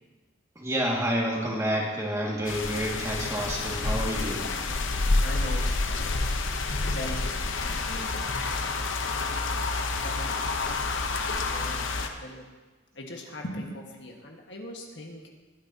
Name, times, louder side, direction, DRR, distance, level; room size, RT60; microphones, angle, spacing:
voice 1, 0.6-4.5, equal, 15° right, -3 dB, 2.1 m, -29 dB
sound 1, 2.4-12.1, left 3 dB, 80° left, 0.9 m, -28 dB
voice 2, 5.2-6.0 6.9-7.2 7.6-9.4 10.0-10.5 11.5-11.9 12.2-12.4 12.9-15.3, left 1 dB, 65° left, 0 dB, 1.6 m, -40 dB
20.5 x 9.8 x 2.9 m, 1.3 s
head